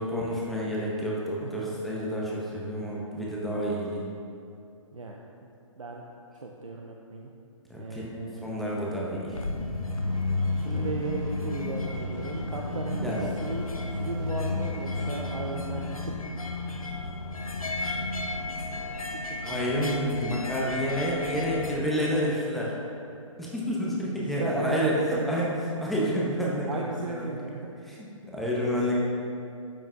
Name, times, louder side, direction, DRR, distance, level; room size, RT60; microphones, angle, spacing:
voice 1, 0.0-4.0 7.7-8.1 8.4-9.4 10.7-10.8 13.0-13.2 19.4-22.7 23.4-25.5 25.8-27.3 27.9-28.9, equal, ahead, -5 dB, 0.7 m, -29 dB
voice 2, 6.3-7.3 7.8-8.5 10.6-13.6 14.0-16.3 18.9-19.2 19.5-20.0 24.0-25.3 26.7-27.7, right 3 dB, 70° right, 0 dB, 0.6 m, -36 dB
sound 1, 9.3-21.8, left 3 dB, 80° left, 0.7 m, -32 dB
sound 2, 9.9-15.8, right 1 dB, 25° right, 1.4 m, -45 dB
12.0 x 5.5 x 2.4 m, 2.7 s
figure-of-eight pair, 135°, 18 cm